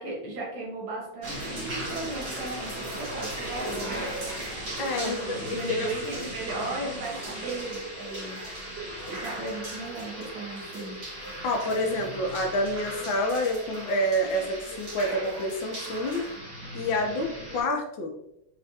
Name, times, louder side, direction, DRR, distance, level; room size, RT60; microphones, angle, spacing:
voice 1, 0.0-4.0 4.9-8.4 9.1-11.0 12.6-12.8, right 2 dB, 70° right, -2 dB, 1.9 m, -36 dB
sound 1, 1.2-17.6, right 1 dB, 50° right, 2.2 m, -37 dB
voice 2, 4.8-5.9 11.4-16.2 16.7-18.1, left 1 dB, 75° left, 2 dB, 1.4 m, -28 dB
4.9 x 3.3 x 2.7 m, 0.81 s
omnidirectional pair, 2.2 m